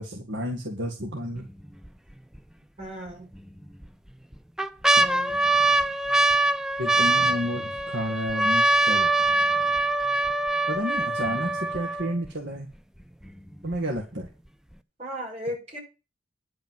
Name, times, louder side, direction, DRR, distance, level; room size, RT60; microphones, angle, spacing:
voice 1, 0.0-1.5 6.8-9.3 10.7-12.7 13.6-14.3, equal, 60° right, 0 dB, 1.9 m, -31 dB
sound 1, 1.4-1.9 2.3-2.4 3.4-3.9 4.3-12.3 13.0-13.1 13.3-13.8 14.2-14.3, right 2 dB, 5° right, 0.5 m, -23 dB
voice 2, 2.8-3.3 5.0-5.3 15.0-15.8, equal, 35° right, -2 dB, 6.7 m, -35 dB
10.5 x 5.3 x 7.6 m, 0.30 s
head